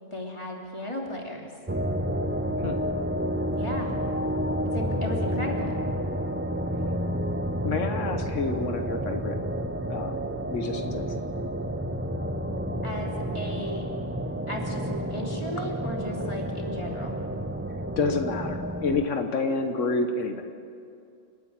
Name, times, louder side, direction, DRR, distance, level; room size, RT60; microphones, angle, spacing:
voice 1, 0.1-1.4 3.6-3.9 4.7-5.8 12.8-13.9 14.5-17.2, equal, 25° left, -1 dB, 3.0 m, -35 dB
sound 1, 1.7-19.1, equal, 15° right, 0.6 m, -30 dB
voice 2, 7.6-9.4 9.9-11.1 16.2-16.3 18.0-20.4, left 3 dB, 90° left, 5 dB, 1.5 m, -29 dB
29.0 x 10.0 x 8.8 m, 2.4 s
omnidirectional pair, 1.2 m